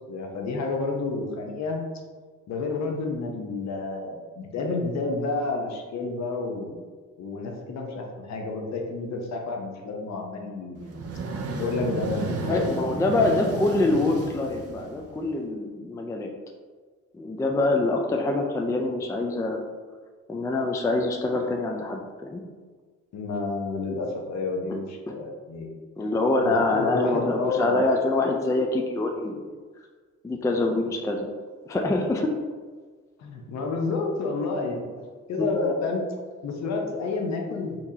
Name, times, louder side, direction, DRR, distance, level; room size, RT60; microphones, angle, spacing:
voice 1, 0.1-1.8 2.5-6.8 7.2-11.0 11.6-12.9 13.2-13.4 23.1-25.8 26.4-27.8 33.2-34.8 35.3-36.0 36.4-37.8, left 3 dB, 65° left, 1 dB, 0.7 m, -30 dB
sound 1, 10.8-15.3, right 3 dB, 55° right, 0.6 m, -33 dB
voice 2, 12.5-16.3 17.1-19.6 20.3-22.4 25.1-25.2 26.0-29.5 30.2-31.3 31.7-32.3 35.4-35.5, left 2 dB, 10° left, 2 dB, 0.3 m, -25 dB
3.7 x 2.9 x 2.7 m, 1.4 s
cardioid pair, 90°, 30 cm